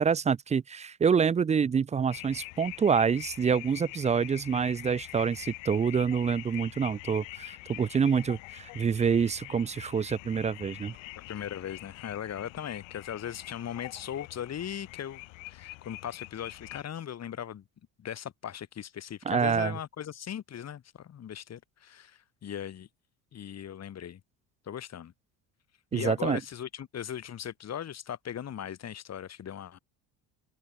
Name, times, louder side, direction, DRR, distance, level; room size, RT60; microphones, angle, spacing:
voice 1, 0.0-10.9 19.3-19.7 25.9-26.4, right 6 dB, 15° right, 0.3 m, -27 dB
sound 1, 2.1-16.8, left 25 dB, 80° left, 5.3 m, -45 dB
voice 2, 11.2-15.2 15.5-17.6 18.0-22.9 23.3-24.2 24.6-25.1 25.9-29.8, left 9 dB, 35° left, 1.3 m, -38 dB
supercardioid pair, 100°, 45 cm